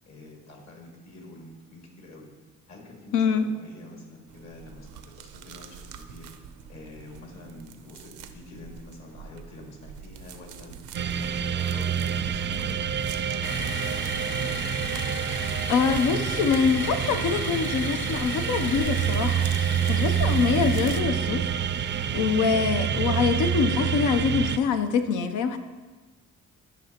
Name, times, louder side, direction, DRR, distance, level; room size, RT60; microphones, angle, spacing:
voice 1, 0.1-2.3 2.7-6.3 6.7-10.8 11.2-12.8 13.3-14.0, left 2 dB, 60° left, 0 dB, 2.1 m, -46 dB
voice 2, 3.1-3.5 15.4-21.5 22.1-25.6, left 6 dB, 90° left, 8 dB, 0.7 m, -25 dB
sound 1, 4.3-21.0, right 7 dB, 90° right, 0.6 m, -44 dB
sound 2, 10.9-24.6, right 8 dB, 40° right, 0.4 m, -27 dB
sound 3, 13.4-21.0, left 5 dB, 40° left, 0.6 m, -37 dB
11.5 x 5.2 x 2.9 m, 1.3 s
cardioid pair, 90°, 30 cm